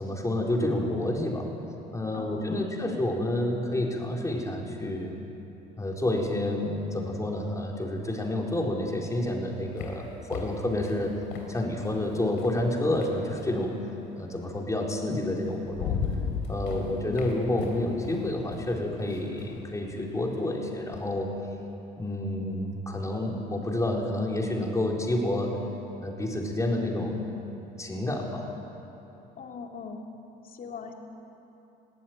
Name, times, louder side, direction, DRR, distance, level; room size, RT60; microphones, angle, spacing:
voice 1, 0.0-1.5 1.9-5.1 5.8-11.2 11.5-13.8 14.2-16.0 16.5-21.3 22.0-25.6 26.0-27.3 27.8-28.5, left 1 dB, 15° left, -1 dB, 4.3 m, -29 dB
voice 2, 2.1-2.7 16.7-17.3 29.4-30.0 30.4-30.9, left 5 dB, 55° left, 2 dB, 2.5 m, -40 dB
sound 1, 9.1-13.6 14.9-15.0 15.4-21.1, left 6 dB, 85° left, 3.4 m, -37 dB
21.0 x 15.5 x 9.4 m, 2.9 s
supercardioid pair, 80°, 18 cm